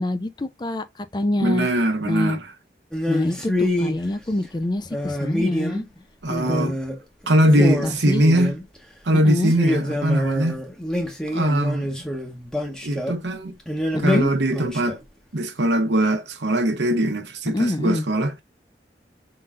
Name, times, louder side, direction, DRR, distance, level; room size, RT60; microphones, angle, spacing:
voice 1, 0.0-1.7 2.0-2.4 3.1-5.8 6.3-6.7 7.5-8.2 9.1-9.5 13.9-14.3 17.5-18.0, left 1 dB, 25° left, 0.4 m, -25 dB
voice 2, 1.4-2.5 6.2-6.8 7.3-8.5 9.1-10.6 11.3-11.9 12.8-13.5 14.0-15.0 15.3-18.4, right 1 dB, 90° right, 1.0 m, -21 dB
sound 1, 2.9-4.0 4.9-6.0 6.4-7.0 7.2-7.3 7.5-8.8 9.5-13.2 13.7-15.0, left 1 dB, 5° left, 0.9 m, -26 dB
5.4 x 3.8 x 2.4 m
head